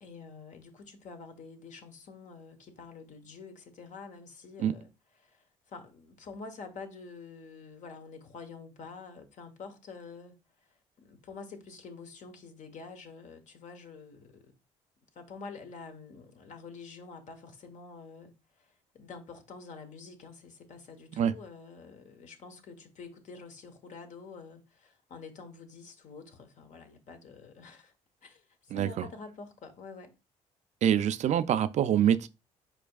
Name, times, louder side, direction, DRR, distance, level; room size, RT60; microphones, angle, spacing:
voice 1, 0.0-4.9 5.2-10.4 10.7-14.5 15.1-27.9 28.2-30.1, left 4 dB, 55° left, 1.1 m, -47 dB
voice 2, 28.7-29.1 30.8-32.3, right 9 dB, 50° right, 0.4 m, -25 dB
4.8 x 4.5 x 2.3 m
supercardioid pair, 70°, 15 cm